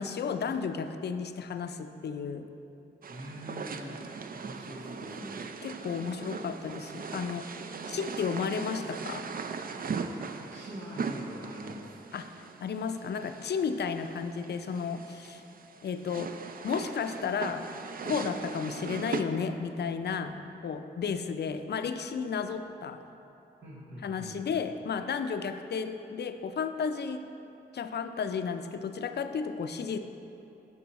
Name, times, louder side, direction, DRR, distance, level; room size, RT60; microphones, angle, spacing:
voice 1, 0.0-2.5 5.6-7.5 7.9-9.3 12.1-15.4 15.8-16.3 16.6-17.6 18.1-20.4 20.6-23.0 24.0-27.2 27.7-30.0, left 6 dB, 60° left, 8 dB, 0.4 m, -33 dB
sound 1, 3.0-19.2, right 5 dB, 50° right, 0.4 m, -39 dB
voice 2, 3.1-4.0 4.3-5.4 10.0-10.1 10.5-11.8 23.6-24.4, equal, 85° right, -8 dB, 1.3 m, -43 dB
7.0 x 6.1 x 4.1 m, 2.8 s
cardioid pair, 50°, 19 cm